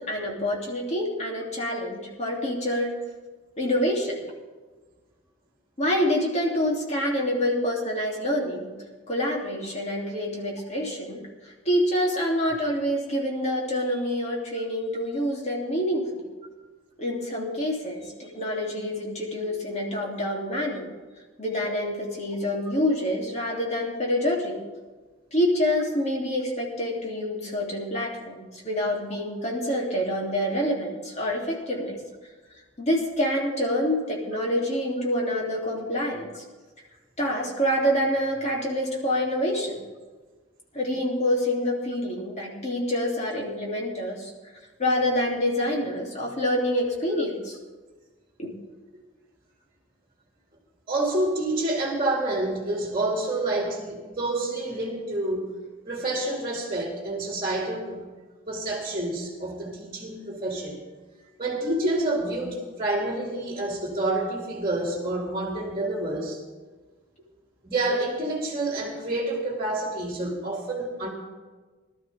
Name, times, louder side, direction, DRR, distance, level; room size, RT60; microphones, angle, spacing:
voice 1, 0.1-3.0 3.6-4.2 5.8-8.7 9.1-16.2 17.0-20.9 21.4-24.6 25.3-32.0 32.8-36.4 37.2-39.8 40.7-44.3 44.8-47.6 48.4-48.5, left 1 dB, 35° left, -2 dB, 2.9 m, -27 dB
voice 2, 50.9-55.4 55.9-58.0 58.5-60.8 61.4-66.4 67.6-71.1, right 2 dB, 25° right, -1 dB, 2.4 m, -28 dB
20.0 x 12.5 x 3.5 m, 1.3 s
head